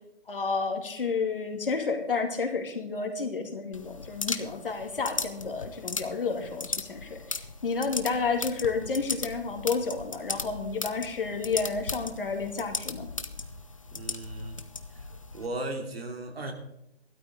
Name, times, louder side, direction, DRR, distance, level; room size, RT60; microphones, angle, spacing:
voice 1, 0.3-13.1, left 4 dB, 55° left, 4 dB, 2.4 m, -31 dB
sound 1, 3.7-15.5, left 3 dB, 30° left, 0.6 m, -37 dB
voice 2, 13.9-14.6 14.9-16.5, right 2 dB, 65° right, 3 dB, 2.9 m, -37 dB
14.5 x 12.5 x 3.8 m, 0.83 s
hypercardioid pair, 175°, 33 cm